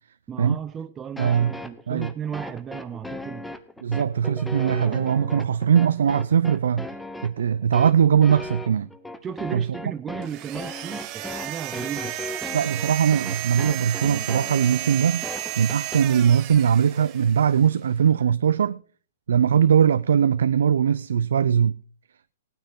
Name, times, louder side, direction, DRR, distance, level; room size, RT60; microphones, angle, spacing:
voice 1, 0.3-3.5 9.2-12.2, right 8 dB, 20° right, 0.5 m, -35 dB
sound 1, 1.2-16.0, left 2 dB, 5° left, 0.9 m, -37 dB
voice 2, 1.2-1.5 1.9-2.1 3.8-6.9 7.2-8.9 9.5-9.7 12.5-18.8 19.3-21.7, right 8 dB, 80° right, 0.4 m, -20 dB
sound 2, 10.2-17.6, right 15 dB, 35° right, 0.9 m, -33 dB
16.5 x 9.3 x 4.0 m
hypercardioid pair, 145°, 0 cm